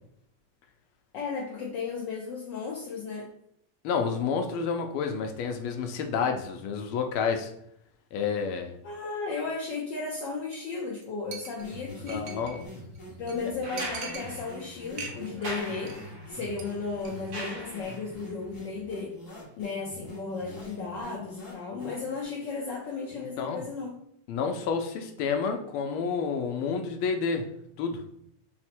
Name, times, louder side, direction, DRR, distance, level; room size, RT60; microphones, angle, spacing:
voice 1, 1.1-3.3 8.8-12.3 13.2-19.1 19.6-24.0, left 4 dB, 70° left, -3 dB, 1.2 m, -35 dB
voice 2, 3.8-7.5 8.1-8.7 12.1-12.6 23.2-23.7 24.3-27.5 27.8-28.0, left 5 dB, 85° left, 5 dB, 1.5 m, -29 dB
Chink clink, 10.5-10.7 11.0-11.1 11.3-12.6 13.0-13.1 13.3-13.4 13.8-14.6 14.9-15.5 15.7-16.0 16.3-16.6 17.0-17.1, right 5 dB, 75° right, 0.7 m, -41 dB
sound 1, 11.6-22.2, left 1 dB, 45° left, 1.2 m, -45 dB
sound 2, 13.6-18.2 19.8-19.9, right 1 dB, 90° right, 2.1 m, -41 dB
5.0 x 2.0 x 4.3 m, 0.73 s
omnidirectional pair, 2.3 m